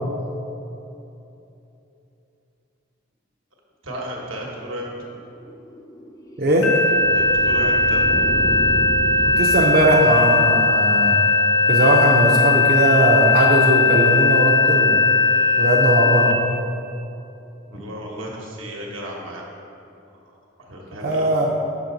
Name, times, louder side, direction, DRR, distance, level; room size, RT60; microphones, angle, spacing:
voice 1, 3.8-4.9 7.1-8.1 17.7-19.4 20.3-20.4 20.6-21.3, equal, 90° right, -2 dB, 1.1 m, -33 dB
sound 1, 5.2-10.8, equal, 20° left, 0.3 m, -32 dB
voice 2, 6.4-6.7 9.4-11.2 11.7-14.9 15.6-16.3 21.0-21.5, right 1 dB, 50° right, -2 dB, 0.5 m, -19 dB
sound 2, 6.6-16.3, left 3 dB, 75° left, 0.7 m, -18 dB
5.9 x 5.3 x 3.8 m, 2.8 s
head